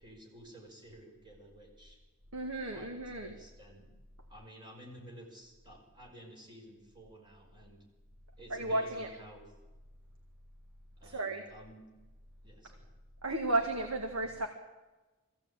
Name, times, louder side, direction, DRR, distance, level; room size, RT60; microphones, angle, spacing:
voice 1, 0.0-2.0 2.7-3.9 4.3-7.8 8.4-9.5 11.0-11.9 12.4-12.9, equal, 20° right, -1 dB, 5.5 m, -53 dB
voice 2, 2.3-3.4 8.5-9.1 11.0-11.4 13.2-14.5, right 2 dB, 70° right, 4 dB, 1.9 m, -33 dB
21.5 x 16.0 x 8.9 m, 1.2 s
head